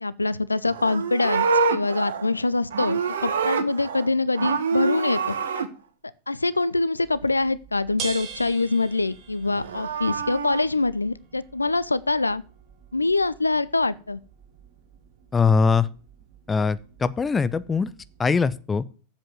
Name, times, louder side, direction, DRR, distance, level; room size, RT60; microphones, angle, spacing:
voice 1, 0.0-5.3 6.3-12.4 12.9-14.2, left 3 dB, 80° left, 18 dB, 0.4 m, -24 dB
Livestock farm animals working animals, 0.6-4.1 4.3-5.7 9.4-10.6, right 5 dB, 65° right, 1.1 m, -26 dB
sound 1, 7.0-18.5, right 7 dB, 40° right, 2.4 m, -44 dB
voice 2, 15.3-15.9 16.5-17.9 18.2-18.8, left 5 dB, 15° left, 16 dB, 0.6 m, -21 dB
7.6 x 7.3 x 7.8 m, 0.38 s
figure-of-eight pair, 90°, 0 cm